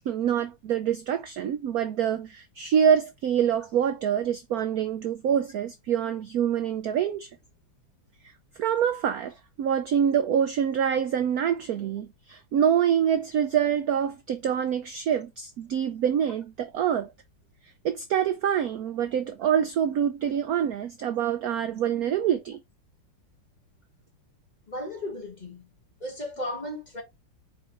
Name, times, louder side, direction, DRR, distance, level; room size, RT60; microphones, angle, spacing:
voice 1, 0.1-7.3 8.6-17.1 17.8-22.6, right 8 dB, 70° right, 0.9 m, -26 dB
voice 2, 24.7-25.7 26.0-27.0, left 1 dB, 20° left, 1.8 m, -35 dB
5.0 x 4.4 x 4.5 m
omnidirectional pair, 2.2 m